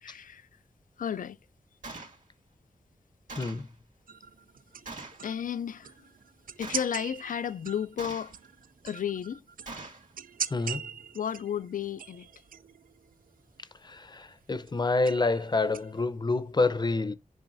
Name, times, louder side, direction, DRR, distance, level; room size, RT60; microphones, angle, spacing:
voice 1, 0.0-0.5 1.0-1.4 5.2-5.9 6.6-8.3 8.8-9.4 11.1-12.3, left 8 dB, 75° left, 0.4 m, -33 dB
Gunshot gunfire, 1.8-2.2 3.3-3.7 4.9-5.2 6.6-7.0 8.0-8.5 9.7-10.1, right 3 dB, 65° right, 2.4 m, -42 dB
voice 2, 3.4-3.7 10.5-10.8 13.9-17.1, left 3 dB, 30° left, 0.6 m, -27 dB
sound 1, 4.1-16.0, right 7 dB, 85° right, 0.5 m, -42 dB
8.9 x 5.4 x 2.6 m
wide cardioid pair, 110°, 14 cm